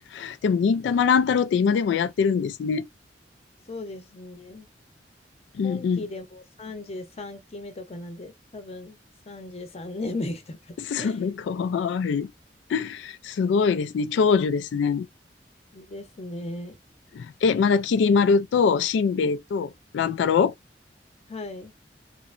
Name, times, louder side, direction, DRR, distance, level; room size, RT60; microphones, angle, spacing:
voice 1, 0.1-2.9 5.6-6.0 10.8-12.3 12.7-15.1 17.1-20.5, left 5 dB, 80° left, 0.3 m, -23 dB
voice 2, 3.7-4.7 5.6-9.0 9.3-10.6 11.0-11.2 15.7-16.8 21.3-21.7, left 2 dB, 35° left, 0.7 m, -36 dB
2.9 x 2.1 x 2.4 m
head